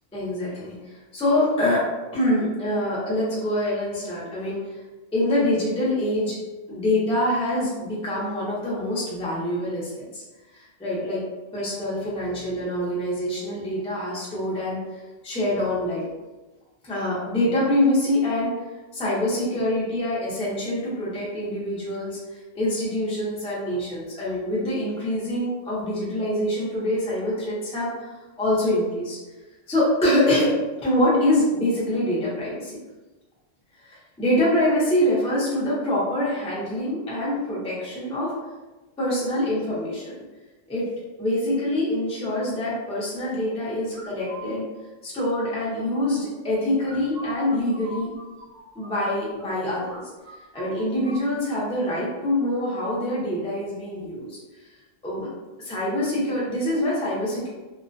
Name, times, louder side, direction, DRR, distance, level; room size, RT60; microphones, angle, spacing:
voice 1, 0.1-1.9 2.1-4.8 5.1-6.4 6.7-10.2 10.5-11.2 11.5-16.1 16.8-18.5 18.9-29.2 29.7-30.5 30.8-32.8 33.8-38.3 39.0-40.1 40.7-40.9 41.2-44.6 45.0-48.1 48.7-50.0 50.5-54.4 54.6-54.7 55.0-55.3 55.6-57.5, left 1 dB, 10° left, -8 dB, 0.4 m, -25 dB
sound 1, 43.9-44.5 46.8-49.5 49.8-50.0 50.2-51.2, right 1 dB, 50° right, 0.7 m, -41 dB
2.3 x 2.1 x 2.5 m, 1.2 s
omnidirectional pair, 1.3 m